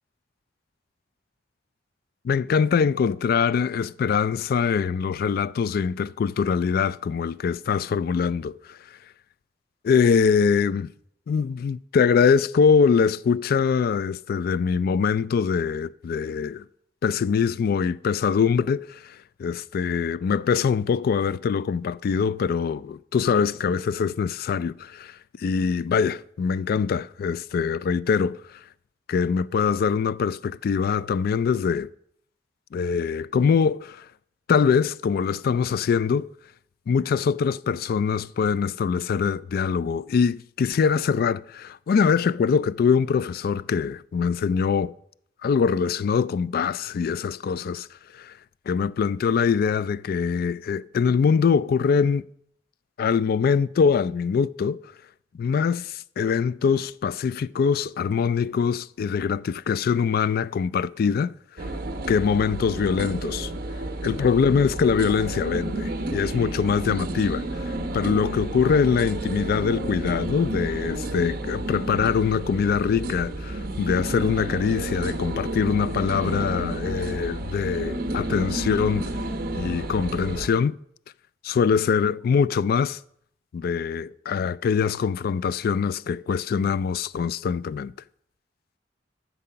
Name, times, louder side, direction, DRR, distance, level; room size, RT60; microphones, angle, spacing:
voice 1, 2.2-8.8 9.8-10.9 11.3-16.6 17.0-28.6 29.1-31.9 32.7-34.0 34.5-36.3 36.9-44.9 45.4-47.9 48.1-48.3 48.7-52.2 53.0-54.8 55.4-61.7 62.1-63.5 64.0-79.1 79.5-80.7 81.4-83.0 83.5-87.9, left 6 dB, 55° left, 0.3 m, -23 dB
sound 1, 61.6-80.5, right 1 dB, 55° right, 1.0 m, -31 dB
12.5 x 6.7 x 5.6 m
head